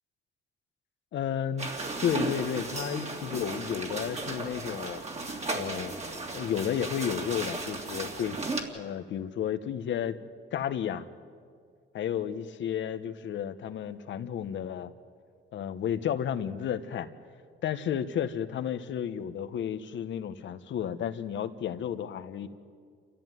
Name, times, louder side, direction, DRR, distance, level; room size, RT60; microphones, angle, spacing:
voice 1, 1.1-1.7 2.0-5.0 5.5-5.9 6.3-8.4 8.7-10.2 10.5-11.1 11.9-14.9 15.5-17.1 17.6-22.5, left 9 dB, 70° left, 10 dB, 1.3 m, -32 dB
sound 1, 1.6-8.6, right 2 dB, 35° right, 3.1 m, -35 dB
28.5 x 14.0 x 9.3 m, 2.1 s
cardioid pair, 90°, 20 cm